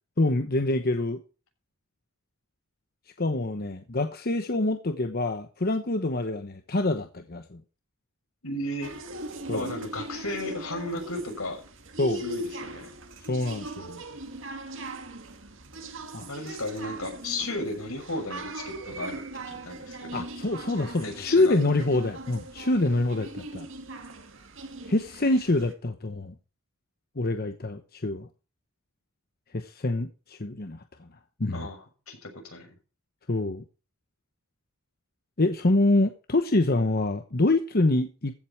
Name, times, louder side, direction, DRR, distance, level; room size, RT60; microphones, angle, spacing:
voice 1, 0.2-1.2 3.2-7.6 9.5-9.7 12.0-12.2 13.2-14.0 16.1-16.3 20.1-23.7 24.9-26.3 27.2-28.3 29.5-31.1 31.4-31.7 33.3-33.6 35.4-38.3, left 2 dB, 45° left, 1.0 m, -26 dB
voice 2, 8.4-8.9 9.5-11.6 12.2-12.9 16.3-19.2 19.6-20.2 21.0-21.5 31.5-31.8 32.1-32.7, left 1 dB, 85° left, 6.5 m, -34 dB
sound 1, 8.8-25.7, right 2 dB, 60° right, 2.1 m, -40 dB
15.0 x 8.2 x 4.5 m
head